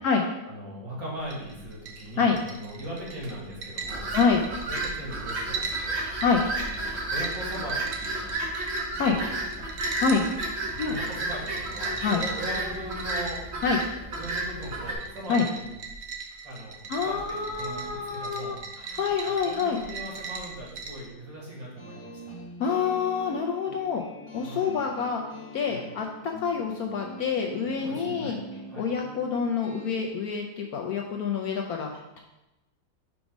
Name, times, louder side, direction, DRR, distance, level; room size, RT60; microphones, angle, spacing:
voice 1, 0.4-4.1 4.7-6.0 6.7-8.4 9.1-9.2 9.6-9.7 10.8-13.4 14.2-15.7 16.4-22.4 24.4-24.7 25.7-25.9 27.8-28.4 28.7-28.9, right 1 dB, 75° right, -5 dB, 2.8 m, -39 dB
sound 1, 1.2-21.1, right 4 dB, 60° right, 0.9 m, -39 dB
sound 2, 3.8-14.9, right 2 dB, 40° right, 1.2 m, -32 dB
voice 2, 16.9-18.6 18.9-19.8 22.6-24.0 24.3-25.2 25.5-28.4 28.8-32.2, left 5 dB, 70° left, 1 dB, 0.9 m, -27 dB
sound 3, 21.8-30.1, equal, 20° left, 1.0 m, -43 dB
5.1 x 4.7 x 5.1 m, 0.98 s
omnidirectional pair, 2.0 m